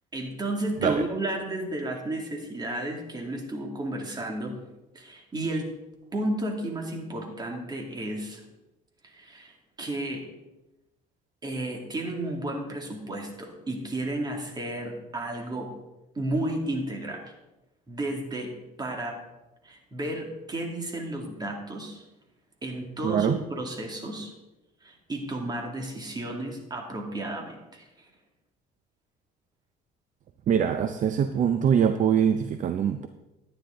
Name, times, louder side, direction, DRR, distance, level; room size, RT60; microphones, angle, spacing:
voice 1, 0.1-4.6 4.9-5.7 6.1-8.4 9.0-10.2 11.4-15.7 16.1-17.3 17.9-18.5 18.8-19.2 19.6-22.0 22.6-24.3 24.8-28.1, right 1 dB, 25° right, 1 dB, 2.4 m, -32 dB
voice 2, 23.0-23.4 30.5-33.1, right 8 dB, 50° right, 8 dB, 0.6 m, -23 dB
12.0 x 9.6 x 3.8 m, 1.0 s
cardioid pair, 110°, 17 cm